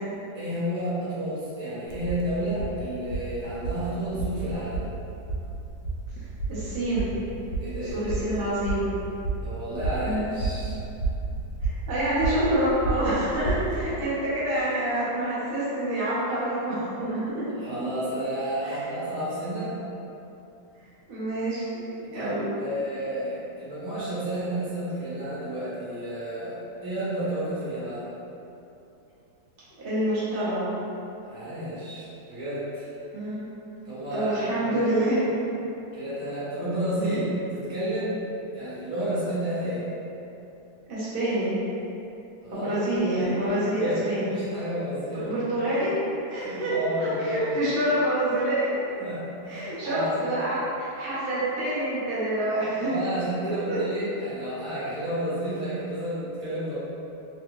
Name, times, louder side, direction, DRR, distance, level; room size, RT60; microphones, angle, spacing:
voice 1, 0.3-4.9 7.6-8.5 9.4-10.8 17.5-19.7 22.1-28.1 31.2-32.9 33.8-34.9 35.9-38.2 38.5-39.9 42.4-42.7 43.0-43.3 43.6-45.6 46.3-47.6 49.0-50.2 52.8-56.8, right 1 dB, 60° right, -11 dB, 1.4 m, -31 dB
sound 1, 1.9-13.8, right 3 dB, 85° left, 1.3 m, -32 dB
voice 2, 6.5-7.2 7.8-8.9 9.9-10.3 11.6-17.5 18.6-18.8 21.1-22.5 29.8-30.7 33.1-33.4 34.1-35.2 40.9-41.6 42.5-44.3 45.1-46.0 46.3-48.7 49.5-52.9 53.4-53.8, right 1 dB, 40° right, -11 dB, 0.9 m, -27 dB
3.5 x 2.4 x 3.0 m, 2.8 s
omnidirectional pair, 2.0 m